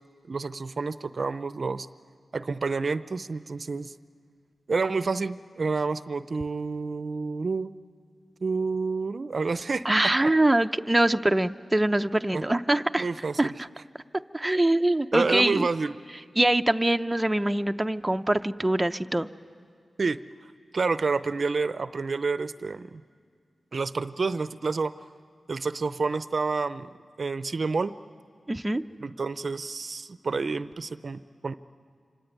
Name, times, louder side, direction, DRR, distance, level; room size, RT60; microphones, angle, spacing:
voice 1, 0.3-1.9 2.3-3.9 4.7-7.7 8.4-9.8 10.2-10.3 12.3-12.4 13.0-13.5 15.1-16.0 20.0-20.2 20.7-23.0 23.7-24.9 25.5-26.9 27.2-27.9 29.0-31.5, right 4 dB, 55° right, 13 dB, 0.6 m, -29 dB
voice 2, 9.8-13.1 13.4-13.7 14.3-15.7 16.4-19.3 28.5-28.8, right 1 dB, 15° right, 8 dB, 0.7 m, -23 dB
26.0 x 24.5 x 9.2 m, 2.1 s
cardioid pair, 70°, 0 cm